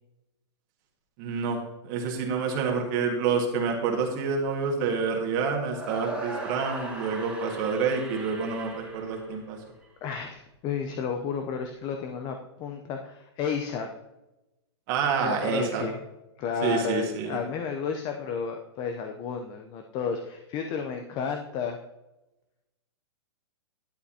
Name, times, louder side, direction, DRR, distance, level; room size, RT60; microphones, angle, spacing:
voice 1, 1.2-9.6 14.9-15.8 16.6-17.4, right 5 dB, 45° right, 1 dB, 1.7 m, -28 dB
sound 1, 5.7-9.9, right 3 dB, 5° right, 1.9 m, -39 dB
voice 2, 10.0-13.9 15.0-16.0 16.4-21.8, left 6 dB, 30° left, 5 dB, 0.7 m, -32 dB
11.5 x 7.8 x 2.9 m, 0.99 s
hypercardioid pair, 140°, 14 cm